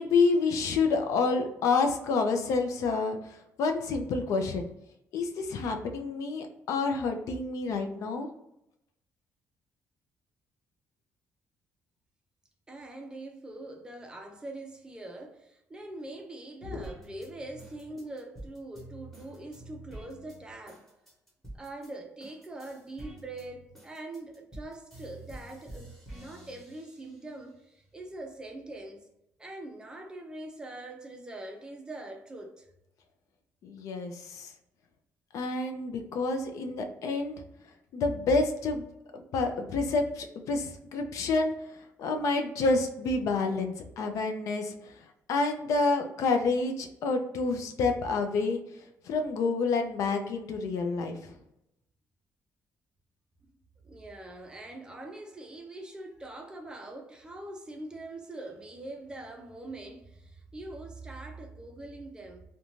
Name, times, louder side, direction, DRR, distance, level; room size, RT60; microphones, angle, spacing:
voice 1, 0.0-4.7 5.1-8.3 16.7-16.9 33.6-34.5 35.3-37.4 37.9-38.8 39.1-45.0 45.3-51.4, left 3 dB, 70° left, 0.4 m, -29 dB
voice 2, 12.7-20.9 21.5-29.1 29.4-32.7 53.8-62.4, right 2 dB, 15° right, 0.4 m, -43 dB
sound 1, 16.8-21.9 22.2-27.4 27.9-28.8, right 1 dB, 5° left, 1.0 m, -48 dB
2.5 x 2.2 x 3.0 m
cardioid pair, 145°, 6 cm